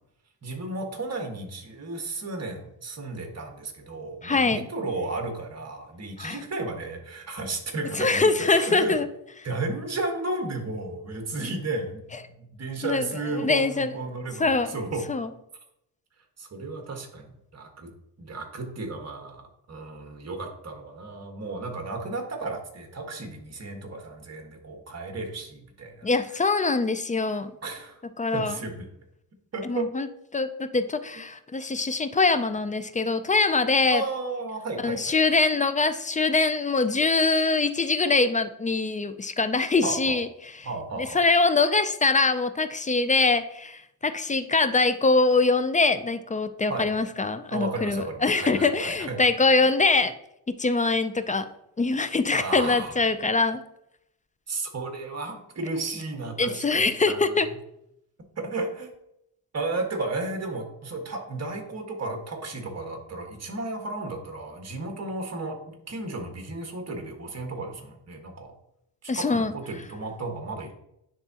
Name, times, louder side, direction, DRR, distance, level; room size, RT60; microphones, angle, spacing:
voice 1, 0.4-8.9 9.4-15.1 16.4-17.9 18.2-26.7 27.6-28.0 28.3-28.9 29.5-29.9 33.9-35.2 39.8-40.2 40.6-41.2 46.7-46.9 47.5-49.2 52.3-53.0 54.5-57.5 58.4-58.9 59.5-68.5 69.0-70.7, right 2 dB, 40° right, 3 dB, 1.5 m, -33 dB
voice 2, 4.2-4.7 6.2-6.3 8.0-9.1 12.8-13.1 13.4-13.9 14.4-14.7 15.1-15.3 26.0-27.5 28.2-28.6 29.7-30.1 30.3-34.0 34.8-40.3 41.0-50.1 50.5-51.5 51.8-53.6 56.4-57.5 69.1-69.5, left 3 dB, 20° left, 11 dB, 0.4 m, -23 dB
10.0 x 3.6 x 2.8 m, 0.79 s
cardioid pair, 85°, 41 cm